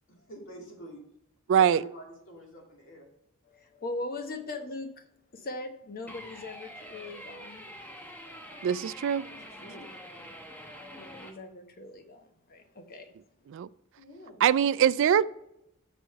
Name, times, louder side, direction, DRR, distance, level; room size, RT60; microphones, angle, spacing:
voice 1, 0.1-1.0 1.7-3.1 9.0-10.3 14.0-14.4, right 1 dB, 65° left, 2.4 m, -47 dB
voice 2, 1.5-1.8 8.6-9.2 13.5-13.7 14.4-15.2, right 9 dB, 60° right, 0.3 m, -23 dB
voice 3, 3.4-5.0 5.3-7.6 9.6-9.8 10.9-13.1, left 2 dB, 45° left, 0.9 m, -40 dB
sound 1, 6.1-11.3, equal, 10° left, 0.9 m, -45 dB
6.4 x 6.2 x 4.6 m
head